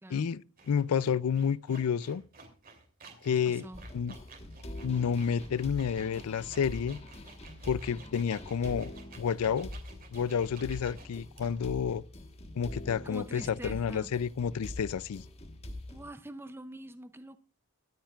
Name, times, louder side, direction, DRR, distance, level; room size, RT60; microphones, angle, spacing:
voice 1, 0.1-2.2 3.2-3.7 3.9-4.1 4.8-7.0 7.7-9.8 10.1-12.0 12.6-15.2, left 7 dB, 85° left, 0.4 m, -30 dB
sound 1, 0.6-11.7, right 4 dB, 40° right, 2.9 m, -53 dB
voice 2, 3.5-3.8 13.0-14.1 15.9-17.4, right 1 dB, 10° right, 0.4 m, -45 dB
sound 2, 3.7-16.1, left 1 dB, 30° left, 1.3 m, -44 dB
23.0 x 8.8 x 2.4 m
head